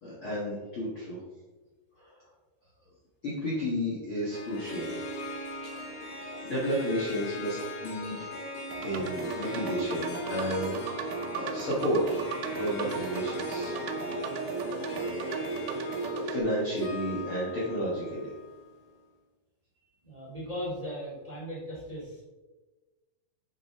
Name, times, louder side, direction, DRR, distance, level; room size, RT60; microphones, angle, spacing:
voice 1, 0.0-1.2 2.0-2.1 3.2-4.9 5.7-8.3 8.8-13.7 14.9-15.1 16.1-18.3, equal, 50° left, -6 dB, 1.8 m, -32 dB
Harp, 4.3-18.8, left 2 dB, 75° left, 3.1 m, -39 dB
sound 1, 8.7-16.4, right 5 dB, 80° right, 2.5 m, -35 dB
voice 2, 20.0-22.2, equal, 10° right, -6 dB, 2.1 m, -37 dB
8.0 x 7.7 x 3.7 m, 1.2 s
omnidirectional pair, 4.4 m